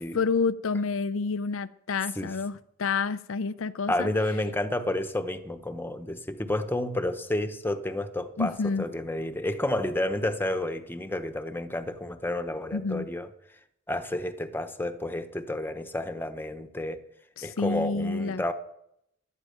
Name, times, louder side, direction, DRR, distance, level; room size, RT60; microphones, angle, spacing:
voice 1, 0.0-4.1 8.4-8.8 12.7-13.1 17.4-18.4, left 4 dB, 80° left, 0.6 m, -29 dB
voice 2, 3.9-13.3 13.9-17.0 17.4-18.5, left 1 dB, 10° left, 1.1 m, -30 dB
16.5 x 12.0 x 5.2 m
head